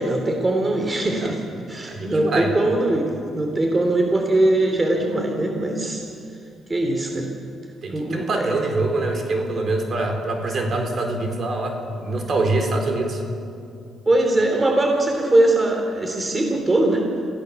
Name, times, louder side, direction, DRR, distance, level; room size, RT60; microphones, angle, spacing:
voice 1, 0.0-1.4 1.7-6.0 6.7-7.3 7.9-8.5 14.0-17.1, right 1 dB, 25° right, 2 dB, 3.2 m, -21 dB
voice 2, 1.9-2.5 7.8-13.2, right 2 dB, 50° right, 3 dB, 4.2 m, -24 dB
27.0 x 16.5 x 7.1 m, 2.4 s
cardioid pair, 90°, 0 cm